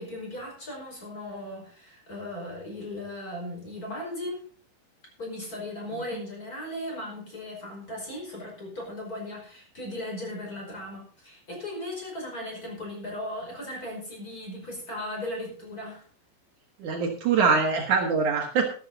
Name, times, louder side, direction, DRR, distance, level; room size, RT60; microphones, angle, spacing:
voice 1, 0.0-4.5 5.2-16.0, left 1 dB, 25° left, 0 dB, 5.5 m, -37 dB
voice 2, 16.8-18.7, right 5 dB, 60° right, 2 dB, 2.8 m, -23 dB
13.0 x 12.5 x 4.0 m, 0.43 s
omnidirectional pair, 4.2 m